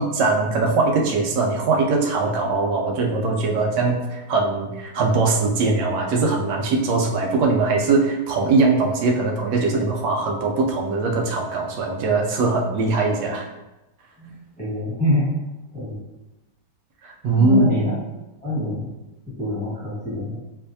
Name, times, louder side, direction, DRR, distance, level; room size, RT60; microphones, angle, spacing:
voice 1, 0.0-13.5 17.2-17.6, right 3 dB, 85° right, 0 dB, 1.2 m, -21 dB
voice 2, 14.2-15.3 15.7-16.0 17.4-18.0 18.4-18.9 19.4-20.4, left 1 dB, 5° left, -9 dB, 1.3 m, -25 dB
4.5 x 2.6 x 2.7 m, 0.99 s
omnidirectional pair, 1.8 m